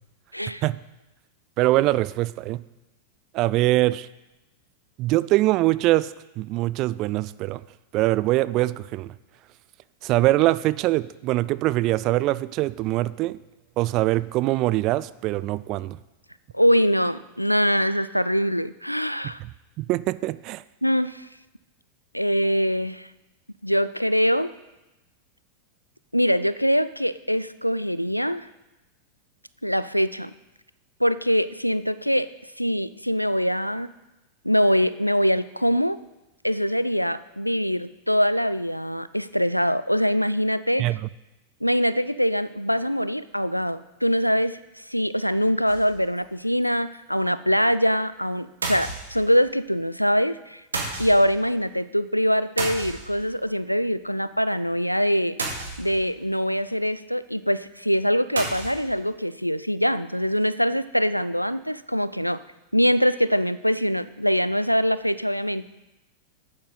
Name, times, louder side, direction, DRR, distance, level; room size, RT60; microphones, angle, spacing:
voice 1, 1.6-2.6 3.3-4.1 5.0-7.6 7.9-9.1 10.0-13.4 13.8-16.0 19.8-20.6 40.8-41.0, right 17 dB, 40° right, 17 dB, 0.3 m, -23 dB
voice 2, 16.5-19.4 20.8-21.3 22.1-23.1 23.6-24.5 26.1-28.5 29.6-30.3 31.0-32.3 32.6-33.9 34.4-36.0 36.4-40.9 41.6-44.6 44.9-50.6 51.0-55.4 55.8-62.4 62.7-65.7, equal, 90° left, 16 dB, 0.3 m, -23 dB
sound 1, 45.7-46.2 46.6-46.7 46.9-47.0 48.6-49.5 50.7-51.4 52.6-53.4 55.4-56.2 58.4-58.9, right 3 dB, 75° right, 2.0 m, -32 dB
11.5 x 8.7 x 3.9 m, 1.0 s
figure-of-eight pair, 90°, 0 cm